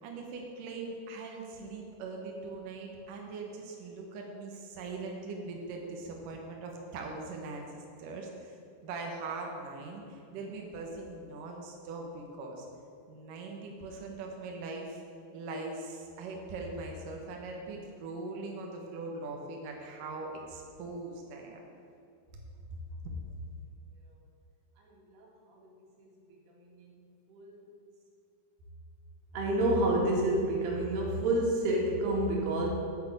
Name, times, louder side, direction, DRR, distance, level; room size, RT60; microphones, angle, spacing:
voice 1, 0.0-8.5 8.8-12.7 13.1-15.0 15.3-21.6, right 3 dB, 65° right, 0 dB, 2.8 m, -41 dB
voice 2, 25.1-25.7 26.0-26.1 26.8-26.9 27.3-27.6 29.3-32.7, right 1 dB, 85° right, -2 dB, 4.2 m, -29 dB
9.3 x 8.6 x 8.1 m, 2.5 s
omnidirectional pair, 4.5 m